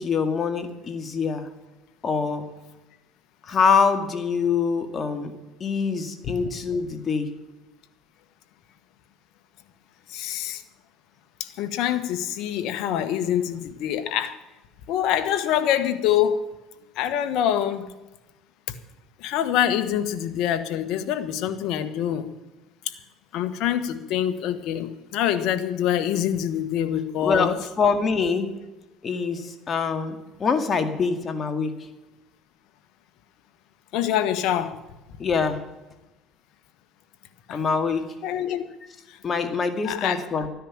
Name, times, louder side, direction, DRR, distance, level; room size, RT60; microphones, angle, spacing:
voice 1, 0.0-1.5 2.0-2.4 3.4-5.3 5.6-7.3 27.2-27.5 27.8-28.5 29.0-31.7 35.2-35.6 37.5-38.1 39.2-40.5, left 5 dB, 40° left, 8 dB, 2.1 m, -24 dB
voice 2, 10.1-10.6 11.4-14.4 14.9-16.4 16.9-17.9 18.7-18.8 19.2-22.3 22.8-22.9 23.3-27.6 33.9-34.8 37.5-37.6 38.2-38.6 39.1-39.2 39.8-40.2, left 10 dB, 75° left, 10 dB, 1.4 m, -25 dB
13.5 x 10.0 x 7.3 m, 1.0 s
supercardioid pair, 90°, 0 cm